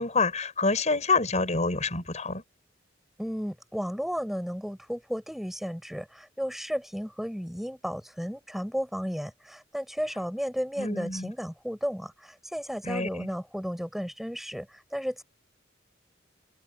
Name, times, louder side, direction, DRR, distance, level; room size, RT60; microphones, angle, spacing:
voice 1, 0.0-2.4 10.8-11.3 12.8-13.3, left 3 dB, 40° left, 6.4 m, -27 dB
voice 2, 3.2-15.2, equal, ahead, 5.1 m, -33 dB
head